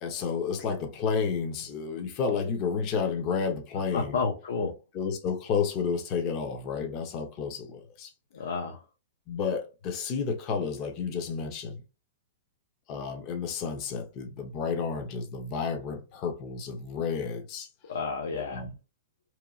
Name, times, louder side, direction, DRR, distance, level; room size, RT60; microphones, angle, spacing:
voice 1, 0.0-4.2 4.9-8.1 9.3-11.8 12.9-17.7 18.3-18.7, left 5 dB, 30° left, 0.5 m, -31 dB
voice 2, 3.9-4.7 8.3-8.8 17.9-18.6, left 4 dB, 75° left, 0.5 m, -30 dB
2.9 x 2.2 x 2.4 m
hypercardioid pair, 160°, 0 cm